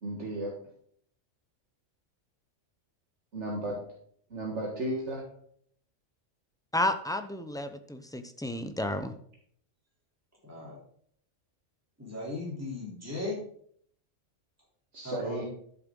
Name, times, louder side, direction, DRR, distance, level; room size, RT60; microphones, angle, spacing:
voice 1, 0.0-0.5 3.3-3.8 4.3-5.2 14.9-15.4, right 1 dB, 65° right, -2 dB, 2.0 m, -34 dB
voice 2, 6.7-9.1, left 1 dB, 5° left, 7 dB, 0.5 m, -31 dB
voice 3, 10.4-10.8 12.0-13.4 15.0-15.5, left 2 dB, 10° right, -5 dB, 3.3 m, -37 dB
12.0 x 7.4 x 3.8 m, 0.62 s
omnidirectional pair, 1.3 m